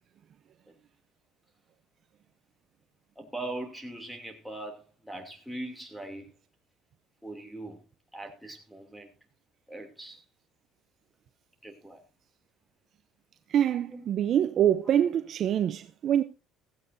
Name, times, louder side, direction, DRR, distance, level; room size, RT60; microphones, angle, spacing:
voice 1, 3.2-6.3 7.2-7.8 8.1-9.1 9.7-10.2 11.6-12.0 13.9-14.1, right 1 dB, ahead, 2.7 m, -40 dB
voice 2, 13.5-16.2, right 10 dB, 40° right, 0.7 m, -25 dB
15.5 x 15.0 x 2.6 m
cardioid pair, 150°, 0 cm